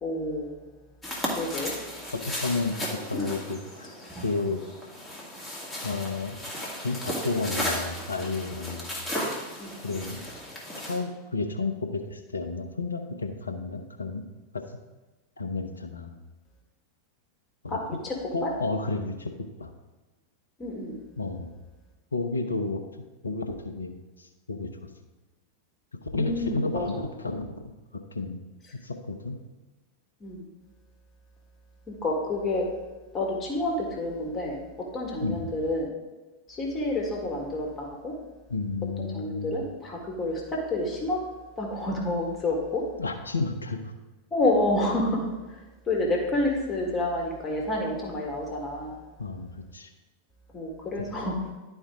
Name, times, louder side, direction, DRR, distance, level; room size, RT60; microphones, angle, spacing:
voice 1, 0.0-0.5 1.4-1.7 9.6-9.7 17.7-18.2 18.4-18.5 20.6-20.9 26.2-27.0 30.2-30.4 31.9-32.7 33.1-34.6 34.9-35.9 36.6-38.1 39.0-41.2 41.6-42.8 44.3-45.2 45.9-48.9 50.5-51.3, left 2 dB, 25° left, -1 dB, 1.8 m, -29 dB
sound 1, 1.0-11.0, left 1 dB, 5° left, 2.0 m, -35 dB
voice 2, 2.1-2.7 3.1-3.9 4.2-4.6 5.8-6.4 6.8-8.9 9.8-10.2 10.9-14.2 14.5-14.6 15.4-16.1 17.6-17.8 18.3-19.3 19.6-19.7 21.2-21.5 22.1-22.8 23.2-24.7 26.1-27.7 28.1-28.4 28.8-29.4 35.2-35.5 38.5-39.7 43.0-43.9 49.2-49.9 51.0-51.1, left 3 dB, 75° left, 6 dB, 0.8 m, -31 dB
11.5 x 4.5 x 3.6 m, 1.2 s
figure-of-eight pair, 90°, 0 cm